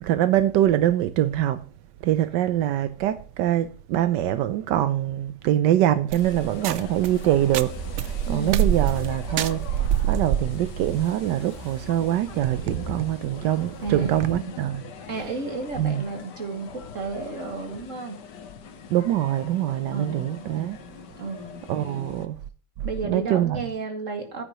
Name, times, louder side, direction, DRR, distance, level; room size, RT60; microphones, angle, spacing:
voice 1, 0.0-1.6 2.0-14.8 15.8-16.0 18.9-20.8 21.7-22.4 23.0-23.6, right 12 dB, 85° right, 1.3 m, -24 dB
sound 1, 6.1-22.3, left 7 dB, 75° left, 1.7 m, -43 dB
sound 2, 6.1-14.4, right 10 dB, 65° right, 0.7 m, -28 dB
sound 3, 6.9-13.8, left 4 dB, 15° right, 3.0 m, -42 dB
voice 2, 8.2-8.7 13.8-14.6 15.1-18.2 19.9-20.5 21.2-21.6 22.8-24.4, right 3 dB, 45° right, 2.5 m, -32 dB
14.5 x 9.7 x 3.0 m
omnidirectional pair, 1.8 m